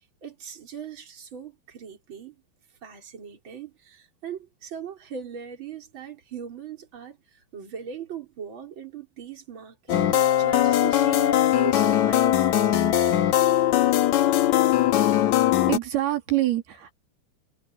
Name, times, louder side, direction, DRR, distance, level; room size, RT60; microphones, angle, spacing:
voice 1, 0.0-2.4 2.8-12.3, right 7 dB, 30° right, 4.5 m, -39 dB
sound 1, 9.9-15.8, left 12 dB, 60° left, 2.2 m, -20 dB
voice 2, 15.7-17.0, right 15 dB, 80° right, 4.9 m, -25 dB
omnidirectional pair, 4.5 m